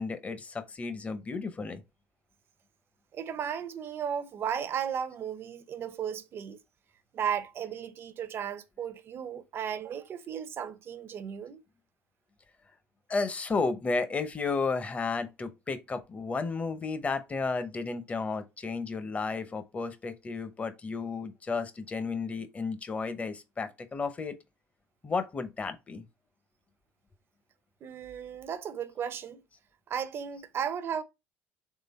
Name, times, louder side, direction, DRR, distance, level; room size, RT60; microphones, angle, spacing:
voice 1, 0.0-1.8 13.1-24.4 25.0-26.0, left 4 dB, 25° left, 0.8 m, -33 dB
voice 2, 3.1-6.6 7.1-11.6 27.8-29.4 29.9-31.0, right 8 dB, 45° right, 0.6 m, -35 dB
3.8 x 3.3 x 4.2 m
supercardioid pair, 100°, 5 cm